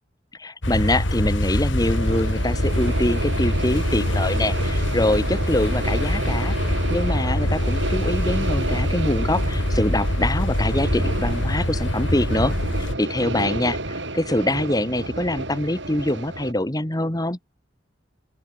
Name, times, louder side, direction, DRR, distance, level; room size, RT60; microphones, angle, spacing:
voice 1, 0.4-13.8 14.1-17.4, left 1 dB, 20° left, 1.8 m, -24 dB
sound 1, 0.6-13.0, left 1 dB, 90° left, 3.9 m, -24 dB
sound 2, 1.8-16.5, right 2 dB, 70° right, 6.0 m, -31 dB
open air
head